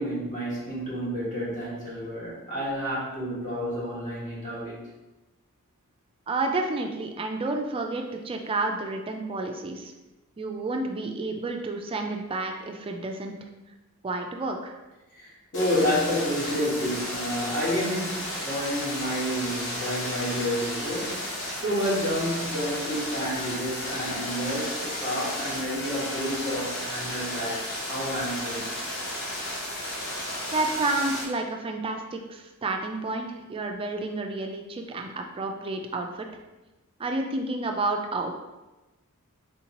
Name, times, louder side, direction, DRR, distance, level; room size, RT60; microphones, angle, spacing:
voice 1, 0.0-4.8 15.1-21.2 21.6-28.7, equal, 35° left, -8 dB, 1.4 m, -30 dB
voice 2, 6.3-9.9 10.4-13.4 14.0-14.8 30.5-36.3 37.0-38.3, right 2 dB, 25° right, 3 dB, 0.3 m, -30 dB
sound 1, 15.5-31.2, left 1 dB, 55° left, 1.0 m, -33 dB
3.6 x 2.8 x 2.9 m, 1.1 s
head